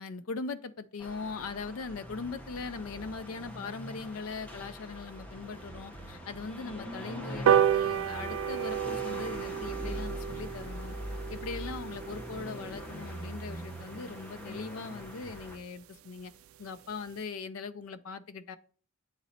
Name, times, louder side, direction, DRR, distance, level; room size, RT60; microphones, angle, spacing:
voice 1, 0.0-11.0 11.3-16.3 16.6-18.6, left 4 dB, 85° left, 0.5 m, -40 dB
sound 1, 1.0-15.6, equal, 5° left, 1.0 m, -42 dB
sound 2, 4.9-12.8, right 1 dB, 25° right, 0.7 m, -54 dB
sound 3, 7.5-14.2 14.6-14.7 15.0-15.2 15.4-15.5 15.8-15.9 16.2-16.5 16.9-17.0, right 9 dB, 85° right, 0.3 m, -31 dB
8.6 x 4.1 x 4.2 m
head